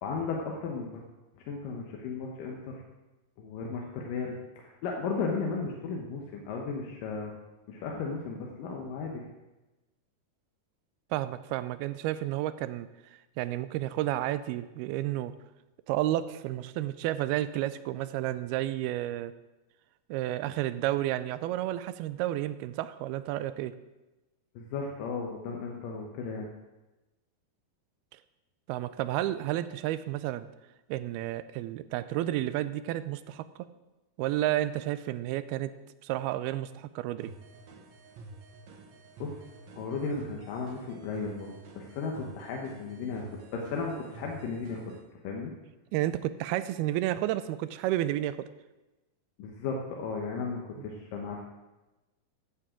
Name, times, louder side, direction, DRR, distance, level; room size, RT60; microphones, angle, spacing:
voice 1, 0.0-1.0 1.5-2.8 3.4-7.3 7.7-9.3 24.6-26.5 39.2-39.4 39.7-43.3 43.5-44.8 45.2-45.5 49.4-51.4, left 4 dB, 70° left, 0 dB, 2.5 m, -35 dB
voice 2, 11.1-12.9 13.4-15.3 15.9-19.3 20.1-23.7 28.7-30.5 30.9-33.5 34.2-35.7 36.0-37.3 45.9-48.5 50.8-50.9, right 14 dB, 90° right, 14 dB, 2.5 m, -31 dB
sound 1, 37.2-45.0, right 3 dB, 60° right, 2.0 m, -49 dB
15.0 x 10.0 x 3.8 m, 1.1 s
omnidirectional pair, 4.4 m